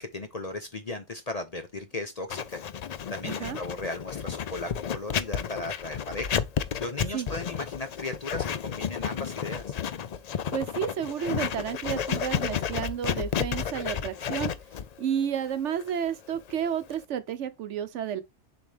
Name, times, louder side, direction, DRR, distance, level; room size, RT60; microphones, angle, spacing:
voice 1, 0.0-2.6 3.1-6.4 6.8-9.8, left 2 dB, 35° left, 0.7 m, -36 dB
Writing, 2.3-17.0, left 8 dB, 85° left, 0.3 m, -32 dB
voice 2, 3.2-3.6 7.1-7.3 10.5-14.5 15.0-18.2, right 8 dB, 70° right, 1.0 m, -31 dB
7.0 x 4.2 x 3.3 m
omnidirectional pair, 1.3 m